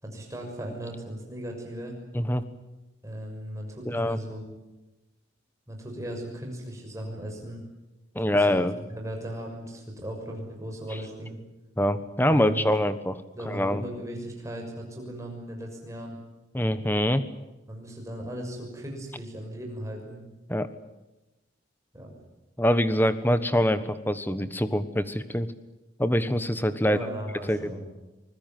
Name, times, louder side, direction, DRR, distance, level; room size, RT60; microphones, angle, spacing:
voice 1, 0.0-2.0 3.0-4.5 5.7-7.6 8.2-8.5 8.9-11.4 12.3-12.7 13.3-16.2 17.7-20.2 21.9-22.1 26.8-27.8, equal, 15° right, 1 dB, 6.5 m, -37 dB
voice 2, 3.8-4.2 8.1-8.7 11.8-13.8 16.5-17.2 20.5-20.7 22.6-25.5 26.0-27.0 27.5-27.7, left 1 dB, 10° left, 12 dB, 1.2 m, -24 dB
25.0 x 20.5 x 9.4 m, 1.0 s
head